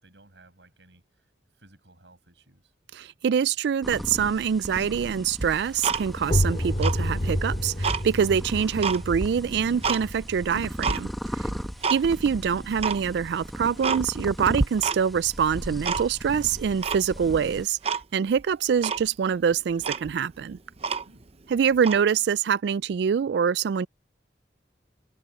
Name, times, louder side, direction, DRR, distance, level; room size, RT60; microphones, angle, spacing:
voice 1, 0.0-2.7 11.4-12.1 21.1-21.2 21.7-21.8, right 1 dB, 85° right, 5.8 m, -56 dB
voice 2, 2.9-11.5 11.9-20.6 21.5-23.9, right 7 dB, 65° right, 0.3 m, -25 dB
sound 1, 3.8-17.7, equal, ahead, 1.1 m, -38 dB
Tick-tock, 5.4-6.4 6.7-8.0 8.5-10.0 10.4-11.0 11.5-12.0 12.3-12.4 12.8-13.0 13.4-13.5 13.8-14.3 14.6-15.2 15.5-16.3 16.8-17.4 17.8-18.0 18.4-18.5 18.8-19.1 19.5-19.6 19.8-21.3 21.8-22.0, right 5 dB, 35° right, 0.7 m, -29 dB
sound 2, 6.2-11.8, equal, 40° left, 2.6 m, -29 dB
head